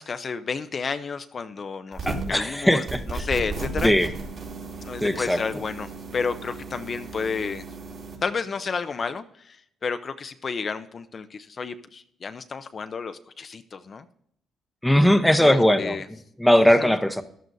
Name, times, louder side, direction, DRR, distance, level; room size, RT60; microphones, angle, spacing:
voice 1, 0.0-3.9 4.8-7.6 8.2-14.1 15.4-16.1 16.6-16.9, left 5 dB, 40° left, 9 dB, 0.5 m, -31 dB
sound 1, 1.9-2.4 2.9-8.2, right 3 dB, 55° right, 3.9 m, -34 dB
voice 2, 2.1-3.3 3.8-4.1 5.0-5.4 14.8-16.0 16.4-17.2, equal, 5° left, 8 dB, 0.8 m, -19 dB
14.0 x 11.5 x 2.7 m, 0.69 s
cardioid pair, 90°, 0 cm